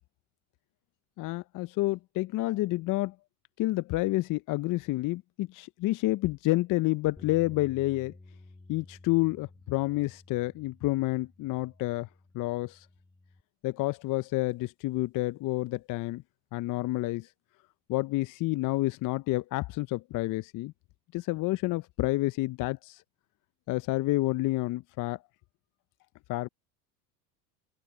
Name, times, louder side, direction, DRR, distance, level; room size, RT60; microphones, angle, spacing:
voice 1, 1.2-3.1 3.6-8.1 8.7-12.1 12.3-12.9 13.6-16.2 16.5-17.3 17.9-20.7 21.1-23.0 23.7-25.2 26.3-26.5, left 19 dB, 45° left, 0.8 m, -29 dB
sound 1, 7.2-13.4, left 2 dB, 10° left, 3.8 m, -53 dB
open air
hypercardioid pair, 80°, 45 cm